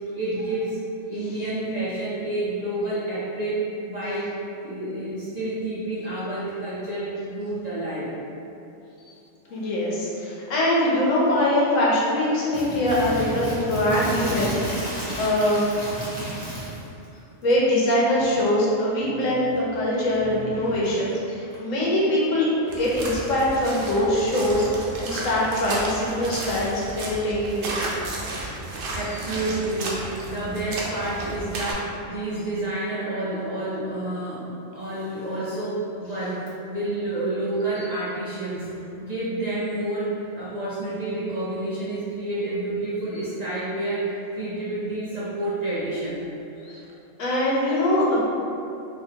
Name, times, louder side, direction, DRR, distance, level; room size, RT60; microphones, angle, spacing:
voice 1, 0.1-0.8 1.1-3.6 3.9-4.3 4.6-8.1 9.6-9.7 12.5-16.8 20.2-21.0 21.4-21.6 28.9-36.4 36.7-38.7 39.0-46.3, right 1 dB, 50° right, -9 dB, 0.5 m, -29 dB
voice 2, 9.5-14.5 15.2-15.6 17.4-24.7 25.0-27.9 28.9-29.2 37.8-37.9 43.2-43.3 46.6-46.8 47.2-48.2, left 1 dB, 85° left, -5 dB, 1.2 m, -23 dB
sound 1, 22.7-31.7, right 2 dB, 80° right, 1.0 m, -33 dB
3.8 x 2.7 x 2.7 m, 2.8 s
omnidirectional pair, 1.3 m